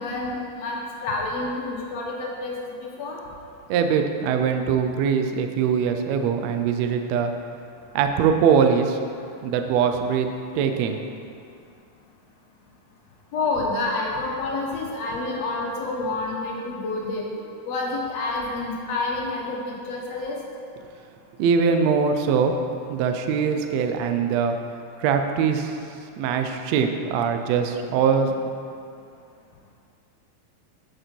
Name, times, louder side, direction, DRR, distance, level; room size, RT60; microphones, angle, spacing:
voice 1, 0.0-3.2 13.3-20.4, left 2 dB, 60° left, -2 dB, 2.2 m, -28 dB
voice 2, 3.7-7.3 7.9-9.0 9.4-10.3 10.5-11.0 21.4-22.6 22.9-24.6 25.0-25.8 26.2-28.4, right 6 dB, 75° right, 6 dB, 1.6 m, -22 dB
8.6 x 8.0 x 4.5 m, 2.4 s
omnidirectional pair, 3.6 m